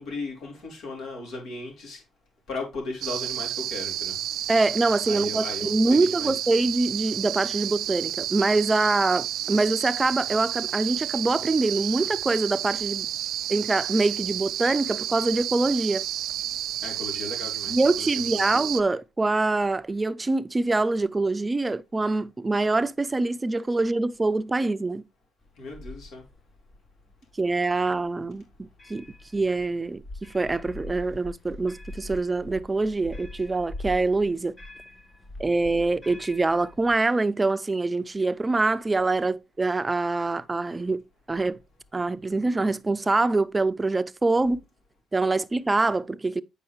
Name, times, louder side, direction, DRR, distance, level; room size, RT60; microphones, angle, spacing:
voice 1, 0.0-2.0 2.5-4.2 5.1-6.3 16.8-18.5 25.6-26.2, left 3 dB, 80° left, 4.0 m, -36 dB
sound 1, 3.0-18.8, right 12 dB, 80° right, 0.3 m, -31 dB
voice 2, 4.5-13.1 13.5-16.0 17.7-25.0 27.4-29.0 29.3-34.5 35.4-41.0 41.3-41.6 41.9-44.6 45.1-46.4, right 3 dB, 20° right, 0.5 m, -24 dB
sound 2, 25.4-37.0, left 2 dB, 25° left, 4.0 m, -43 dB
8.4 x 5.4 x 3.1 m
cardioid pair, 90°, 0 cm